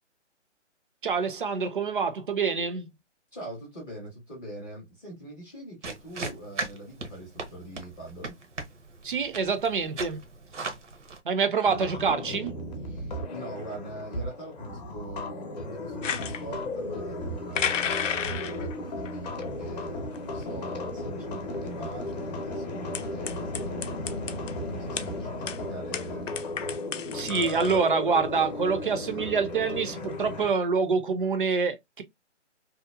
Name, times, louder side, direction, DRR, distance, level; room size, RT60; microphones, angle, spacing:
voice 1, 1.0-2.9 9.0-10.2 11.2-12.5 27.1-32.0, right 5 dB, 45° right, 0.5 m, -26 dB
voice 2, 3.3-8.3 12.9-26.3, right 1 dB, 5° left, 0.5 m, -42 dB
sound 1, 5.8-11.2, right 3 dB, 75° right, 0.9 m, -38 dB
sound 2, 11.6-30.5, left 2 dB, 35° left, 0.8 m, -35 dB
sound 3, 16.0-16.4 17.6-18.8 19.1-19.4 20.1-20.2 20.4-20.5 21.5-21.6 22.9-24.5 25.0-25.1 25.5-25.6 25.9-27.9, left 7 dB, 85° left, 0.5 m, -32 dB
2.8 x 2.1 x 2.2 m
figure-of-eight pair, 150°, 36 cm